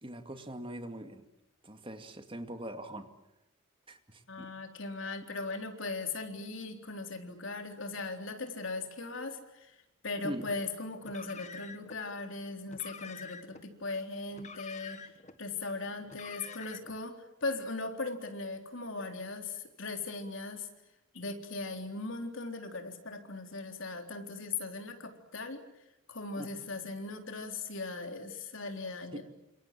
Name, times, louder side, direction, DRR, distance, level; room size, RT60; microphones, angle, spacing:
voice 1, 0.0-1.2 1.6-3.1 3.9-4.5 10.2-10.5 26.4-26.5 29.1-29.2, right 1 dB, 25° right, 7 dB, 2.3 m, -42 dB
voice 2, 4.3-9.8 10.0-15.1 15.4-20.7 21.1-25.7 26.1-29.2, left 3 dB, 65° left, 5 dB, 3.8 m, -39 dB
Car, 11.0-12.0 12.7-13.6 14.3-15.4 16.0-17.0, left 5 dB, 35° left, 1.8 m, -47 dB
28.5 x 27.0 x 7.6 m, 0.85 s
head